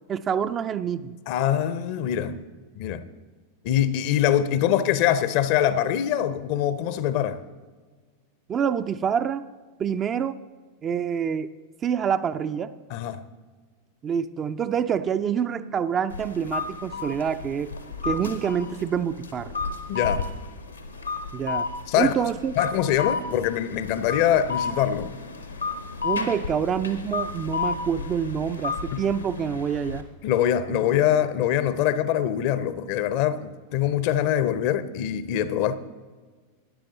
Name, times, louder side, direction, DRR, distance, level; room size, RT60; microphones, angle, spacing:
voice 1, 0.1-1.1 8.5-9.4 9.8-10.4 10.8-11.5 11.8-12.7 14.0-17.7 18.0-19.5 21.3-21.7 22.0-22.5 26.0-30.0, right 7 dB, 25° right, 0.4 m, -26 dB
voice 2, 1.3-2.4 2.8-3.0 3.6-7.4 12.9-13.2 19.9-20.3 21.9-22.1 22.6-25.1 28.9-29.0 30.2-35.7, left 10 dB, 45° left, 0.6 m, -23 dB
sound 1, 16.1-30.0, left 5 dB, 80° left, 1.1 m, -32 dB
13.0 x 10.0 x 4.0 m
figure-of-eight pair, 90°, 0 cm